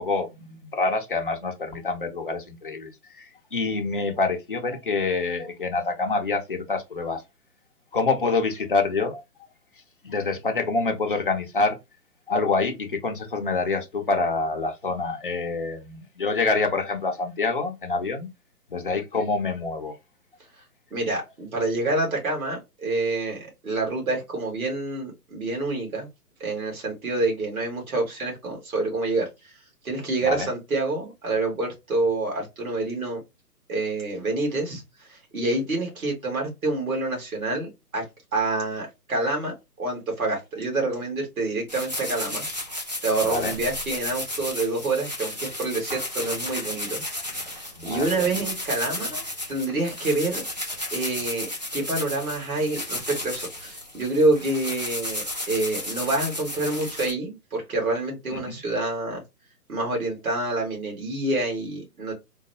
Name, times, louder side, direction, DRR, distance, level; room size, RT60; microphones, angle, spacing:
voice 1, 0.0-7.2 7.9-9.2 10.0-11.8 12.3-18.3 18.7-20.0 30.2-30.5 43.2-43.5 47.8-48.3 58.3-58.5, left 3 dB, 35° left, 0.5 m, -26 dB
voice 2, 20.9-26.1 26.4-29.6 29.8-33.2 33.7-38.0 38.3-42.5 42.7-47.0 47.4-49.2 49.5-50.4 50.9-59.2 59.7-62.1, right 2 dB, 60° right, 2.1 m, -27 dB
sound 1, 41.7-57.1, left 1 dB, 30° right, 0.4 m, -33 dB
3.8 x 2.2 x 2.7 m
hypercardioid pair, 155°, 48 cm